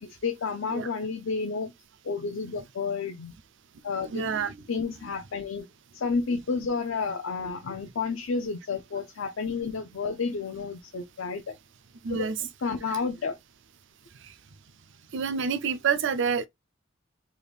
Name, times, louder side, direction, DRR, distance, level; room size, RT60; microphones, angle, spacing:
voice 1, 0.0-1.7 2.0-3.3 3.8-4.2 4.7-5.7 5.9-11.6 12.1-12.3 12.6-13.4, left 4 dB, 90° left, 0.6 m, -31 dB
voice 2, 4.1-4.5 12.0-12.4 15.1-16.5, right 6 dB, 65° right, 0.5 m, -27 dB
3.7 x 3.4 x 2.3 m
head